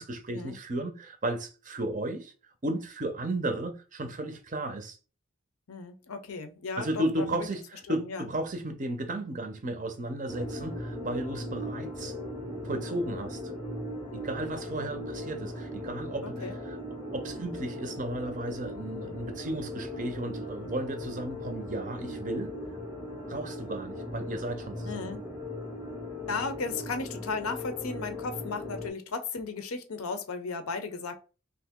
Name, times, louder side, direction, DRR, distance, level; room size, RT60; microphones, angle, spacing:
voice 1, 0.0-2.3 2.6-5.0 6.8-12.1 12.6-13.4 14.1-16.8 17.1-22.6 23.3-25.1, right 1 dB, 35° right, 0.5 m, -34 dB
voice 2, 5.7-7.4 7.9-8.3 16.2-16.6 24.8-25.3 26.3-31.2, left 4 dB, 75° left, 0.6 m, -35 dB
sound 1, 10.3-28.9, left 1 dB, 5° left, 0.7 m, -38 dB
2.9 x 2.5 x 3.5 m
head